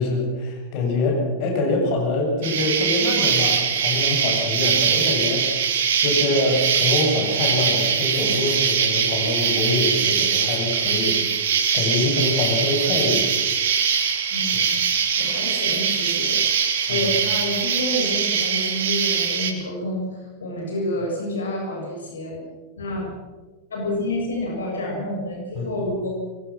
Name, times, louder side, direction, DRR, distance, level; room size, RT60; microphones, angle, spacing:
voice 1, 0.0-5.7 6.0-11.2 11.7-13.3 14.5-14.7 16.9-17.1 25.5-25.7, left 2 dB, 45° left, 1 dB, 7.8 m, -24 dB
Insect, 2.4-19.5, right 7 dB, 55° right, 3.2 m, -22 dB
voice 2, 14.3-14.7 15.2-16.4 16.9-22.4 22.8-23.1 23.7-26.1, left 1 dB, 70° left, -1 dB, 7.0 m, -28 dB
25.5 x 22.5 x 6.3 m, 1.3 s
figure-of-eight pair, 90°, 0 cm